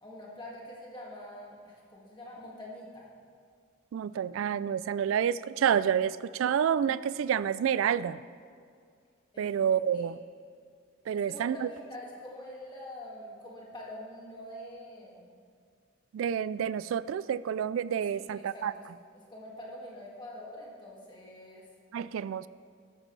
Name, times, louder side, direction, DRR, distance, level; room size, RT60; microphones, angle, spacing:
voice 1, 0.0-3.1 9.3-9.6 9.9-10.1 11.3-15.3 18.1-18.9 19.1-21.7, left 1 dB, 20° left, -4 dB, 2.0 m, -45 dB
voice 2, 3.9-8.2 9.4-10.2 11.1-11.7 16.1-18.7 21.9-22.5, right 8 dB, 80° right, 17 dB, 0.3 m, -29 dB
14.0 x 12.5 x 3.3 m, 2.2 s
head